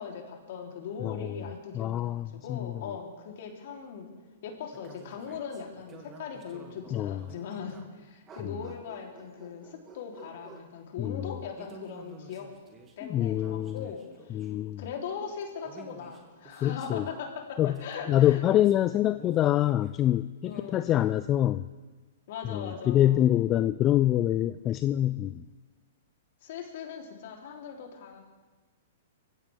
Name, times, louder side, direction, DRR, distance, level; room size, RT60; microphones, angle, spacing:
voice 1, 0.0-4.1 4.4-12.5 13.0-18.4 20.4-20.9 22.3-23.3 26.4-28.2, left 6 dB, 60° left, 1 dB, 3.3 m, -40 dB
voice 2, 1.7-2.8 6.9-7.2 8.5-8.6 11.0-11.3 13.1-13.9 14.3-14.8 16.6-17.0 17.6-17.7 18.1-21.6 22.5-25.4, left 12 dB, 30° left, 12 dB, 0.4 m, -25 dB
sound 1, 4.7-8.0 8.3-10.7 11.6-14.5 15.4-17.3 17.7-20.0 20.4-21.2, right 5 dB, 25° right, 2.3 m, -51 dB
24.0 x 15.0 x 3.5 m, 1.3 s
hypercardioid pair, 120°, 0 cm